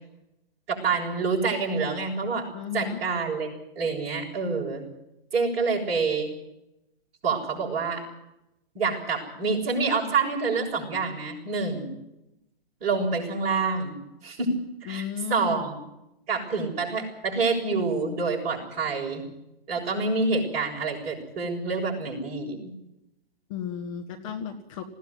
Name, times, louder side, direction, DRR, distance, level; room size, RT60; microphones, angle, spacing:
voice 1, 0.7-2.5 2.7-4.8 5.3-6.3 7.2-8.0 8.7-11.9 12.8-14.5 14.8-15.7 16.3-19.2 19.7-22.7, right 4 dB, 25° right, -2 dB, 7.3 m, -27 dB
voice 2, 2.5-3.0 14.8-15.6 23.5-24.8, left 8 dB, 35° left, 5 dB, 1.6 m, -34 dB
20.0 x 17.0 x 9.8 m, 0.88 s
figure-of-eight pair, 125°, 30 cm